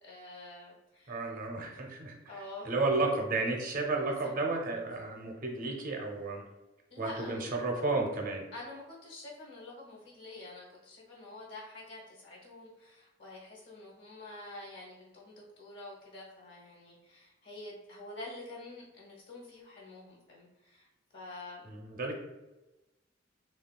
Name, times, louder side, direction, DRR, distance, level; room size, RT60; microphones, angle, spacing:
voice 1, 0.0-1.2 2.3-3.0 4.2-4.3 6.9-7.4 8.5-21.7, left 2 dB, 70° left, -4 dB, 0.8 m, -47 dB
voice 2, 1.1-6.4 7.0-8.5 21.6-22.2, right 3 dB, 45° right, 1 dB, 0.6 m, -32 dB
3.0 x 2.3 x 2.2 m, 1.0 s
head